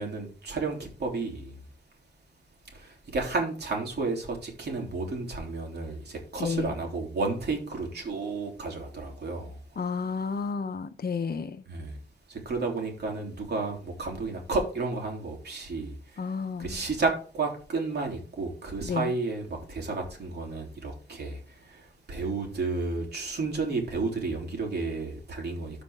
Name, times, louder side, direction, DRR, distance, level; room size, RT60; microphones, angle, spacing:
voice 1, 0.0-1.5 3.1-6.0 6.3-9.5 11.7-11.9 12.4-15.9 16.6-21.4 22.1-25.8, right 3 dB, 65° right, 3.3 m, -31 dB
voice 2, 6.4-6.8 9.8-11.6 16.2-16.9 18.8-19.1, left 5 dB, 60° left, 0.9 m, -31 dB
13.5 x 5.1 x 3.7 m
wide cardioid pair, 100°, 18 cm